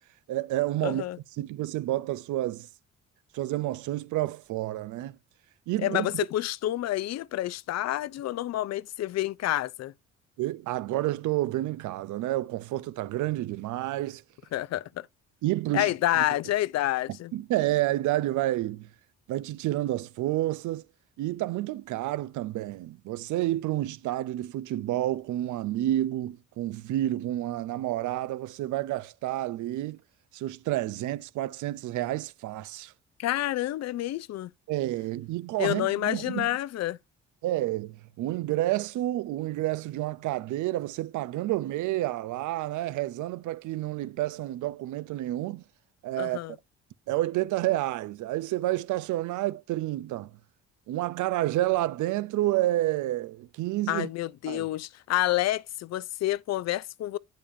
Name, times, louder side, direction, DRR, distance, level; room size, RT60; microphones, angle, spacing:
voice 1, 0.3-1.0 1.4-2.7 3.3-5.2 5.7-6.1 10.4-14.2 15.4-15.9 17.3-18.9 19.3-20.8 21.2-30.0 30.3-32.9 34.7-36.5 37.4-45.6 46.0-46.4 47.1-50.3 50.9-54.1 54.5-54.7, right 15 dB, 80° right, 0.5 m, -29 dB
voice 2, 0.8-1.2 5.8-9.9 14.5-15.1 15.7-17.3 33.2-34.5 35.6-37.0 46.2-46.6 53.9-57.2, left 14 dB, 60° left, 0.5 m, -28 dB
8.6 x 5.2 x 2.7 m
cardioid pair, 90°, 30 cm